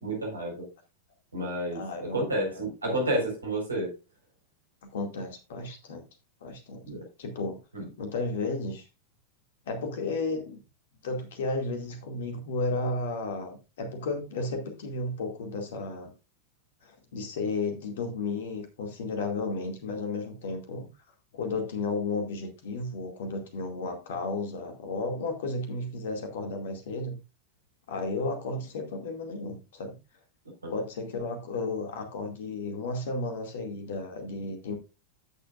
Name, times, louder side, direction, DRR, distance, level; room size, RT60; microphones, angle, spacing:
voice 1, 0.0-0.7 1.3-3.9 6.8-7.0 7.7-7.9 30.6-30.7, right 1 dB, 75° right, 0 dB, 4.6 m, -30 dB
voice 2, 1.7-2.3 4.8-6.1 6.4-6.8 7.2-7.6 8.0-8.9 9.7-10.6 11.0-16.1 16.8-20.9 21.3-27.2 27.9-30.0 30.7-34.8, left 3 dB, 60° left, 5 dB, 2.2 m, -33 dB
15.0 x 6.8 x 2.5 m, 0.27 s
figure-of-eight pair, 90°, 0 cm